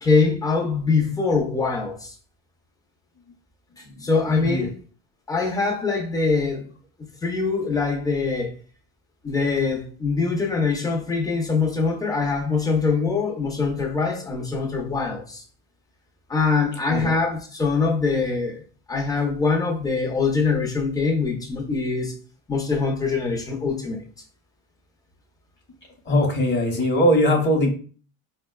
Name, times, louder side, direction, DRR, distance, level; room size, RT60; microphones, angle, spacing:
voice 1, 0.0-2.1 3.8-4.7 5.3-6.6 7.2-8.5 9.2-15.4 16.3-18.6 18.9-22.1 22.5-24.0, left 4 dB, 10° left, 0.5 m, -23 dB
voice 2, 4.4-4.7 16.9-17.1 26.1-27.7, left 1 dB, 30° left, 0.9 m, -21 dB
4.0 x 2.1 x 2.2 m
cardioid pair, 150°, 35 cm